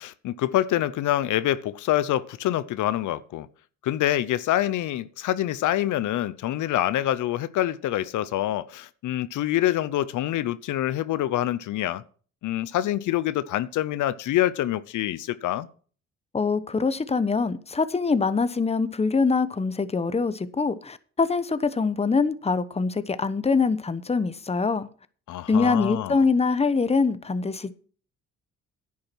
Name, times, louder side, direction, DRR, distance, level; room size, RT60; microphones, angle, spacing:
voice 1, 0.0-3.5 3.8-12.0 12.4-15.7 25.3-26.2, left 13 dB, 80° left, 0.7 m, -26 dB
voice 2, 16.3-24.9 25.5-27.7, left 4 dB, 20° left, 1.0 m, -24 dB
10.5 x 8.5 x 6.1 m
cardioid pair, 90°, 30 cm